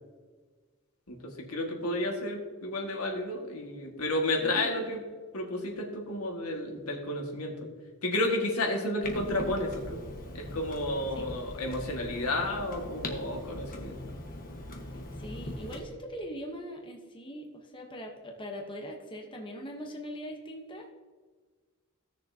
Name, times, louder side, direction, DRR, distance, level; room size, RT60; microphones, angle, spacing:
voice 1, 1.5-5.0 5.3-7.5 8.0-10.0 10.3-14.0, left 1 dB, 85° left, 0 dB, 1.9 m, -31 dB
Clock, 9.0-15.8, left 1 dB, 40° left, 1.3 m, -41 dB
voice 2, 15.2-20.9, equal, 25° left, 1 dB, 1.1 m, -41 dB
17.0 x 6.7 x 2.8 m, 1.4 s
head